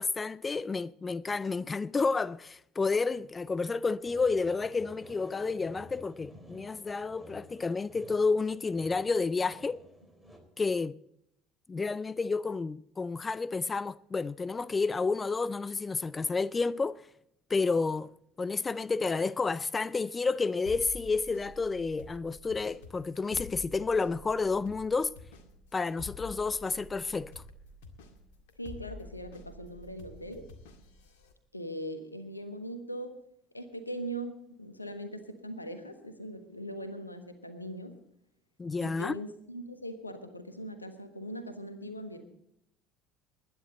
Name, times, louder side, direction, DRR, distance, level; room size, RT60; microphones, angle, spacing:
voice 1, 0.0-9.8 10.6-11.0 11.7-17.0 17.5-18.1 18.4-25.1 25.7-27.4 38.6-39.2, left 4 dB, 25° left, 0.4 m, -30 dB
sound 1, 4.0-10.4, equal, ahead, 3.9 m, -52 dB
sound 2, 20.7-31.3, left 4 dB, 65° left, 1.9 m, -49 dB
voice 2, 28.6-30.5 31.5-33.2 33.5-38.0 38.8-42.2, right 1 dB, 90° left, 1.3 m, -40 dB
20.5 x 10.0 x 4.0 m
figure-of-eight pair, 60°, 0 cm